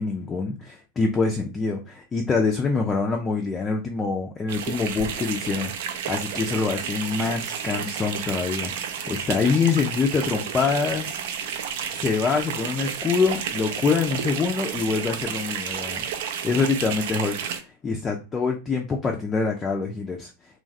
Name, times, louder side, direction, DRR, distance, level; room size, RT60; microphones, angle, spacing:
voice 1, 0.0-11.1 11.9-16.0 16.4-17.4 17.8-20.3, left 4 dB, 20° left, 2 dB, 0.4 m, -25 dB
sound 1, 4.5-17.6, right 8 dB, 55° right, 0.4 m, -31 dB
3.1 x 2.3 x 2.6 m, 0.30 s
figure-of-eight pair, 90°, 0 cm